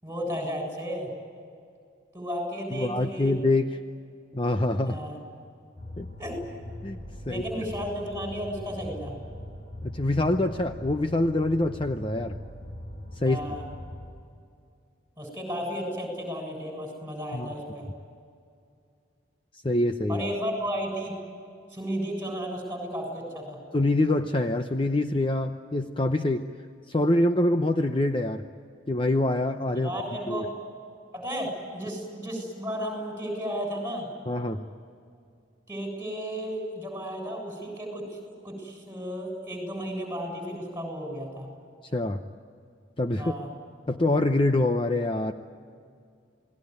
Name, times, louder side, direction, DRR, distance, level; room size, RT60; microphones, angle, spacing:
voice 1, 0.0-1.1 2.1-3.3 4.9-5.2 6.2-6.4 7.3-9.2 13.2-13.6 15.2-17.9 20.1-21.1 21.7-23.6 29.7-30.5 31.1-34.1 35.7-41.5 43.2-43.5, equal, 15° right, 2 dB, 7.4 m, -33 dB
voice 2, 2.7-3.8 4.3-5.0 6.0-6.1 6.8-7.0 7.3-7.4 9.8-12.4 13.2-13.4 17.3-17.5 19.6-20.2 23.7-26.4 26.9-28.4 28.9-29.9 30.3-30.4 34.3-34.6 41.9-42.2 43.0-43.3 43.9-45.3, left 1 dB, 30° left, 7 dB, 0.8 m, -25 dB
sound 1, 5.7-14.1, left 1 dB, 45° left, 6.8 m, -41 dB
29.5 x 19.5 x 9.6 m, 2.3 s
head